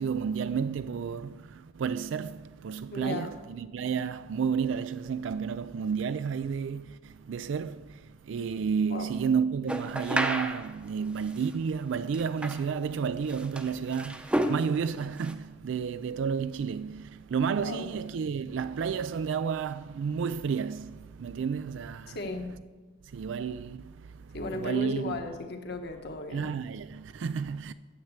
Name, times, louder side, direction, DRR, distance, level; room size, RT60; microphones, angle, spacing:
voice 1, 0.0-22.2 23.1-25.2 26.3-27.7, right 6 dB, 70° right, 0.3 m, -31 dB
voice 2, 2.9-3.3 8.9-9.1 17.6-17.9 22.1-22.5 24.3-26.5, left 2 dB, 55° left, 1.3 m, -35 dB
sound 1, 9.7-10.7 11.4-11.5 12.1-12.6 13.3-14.7 15.0-15.3, right 1 dB, 5° right, 0.7 m, -31 dB
9.6 x 7.5 x 8.0 m
head